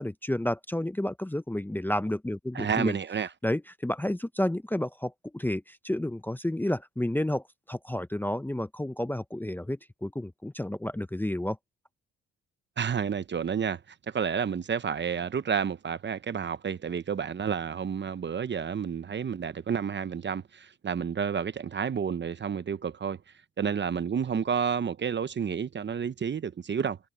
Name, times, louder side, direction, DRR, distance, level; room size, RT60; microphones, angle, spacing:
voice 1, 0.0-2.9 3.4-11.6, left 1 dB, 5° left, 0.7 m, -31 dB
voice 2, 2.5-3.3 12.8-13.8 14.1-23.2 23.6-27.0, right 7 dB, 35° right, 0.9 m, -30 dB
cardioid pair, 90°, 30 cm